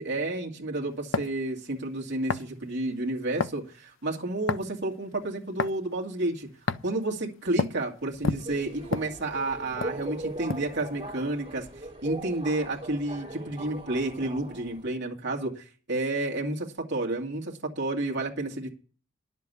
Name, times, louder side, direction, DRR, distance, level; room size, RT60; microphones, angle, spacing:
voice 1, 0.0-6.5 6.8-11.7 12.0-18.7, right 2 dB, 55° right, 0 dB, 2.4 m, -31 dB
sound 1, 1.1-1.4 2.3-2.5 3.4-3.6 4.5-4.8 5.6-5.8 6.7-6.9 7.6-7.8 8.2-9.5 9.8-10.0 10.5-10.8, left 4 dB, 60° left, 0.5 m, -29 dB
Subway metro underground, 8.1-14.9, right 1 dB, 25° right, 4.2 m, -39 dB
11.0 x 7.5 x 6.8 m, 0.39 s
head